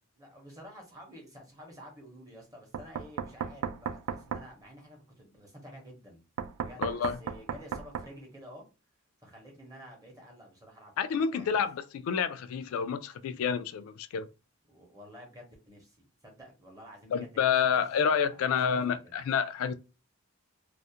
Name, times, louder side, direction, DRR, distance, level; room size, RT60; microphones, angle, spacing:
voice 1, 0.1-6.2 6.6-8.7 9.2-11.7 14.7-16.0 16.2-17.9 18.2-19.2, equal, 15° right, 0.7 m, -51 dB
Knock, 2.7-4.5 6.4-8.1, right 7 dB, 85° right, 0.3 m, -35 dB
voice 2, 6.8-7.2 11.0-14.3 17.1-19.7, left 7 dB, 80° left, 0.3 m, -29 dB
2.3 x 2.0 x 2.7 m
head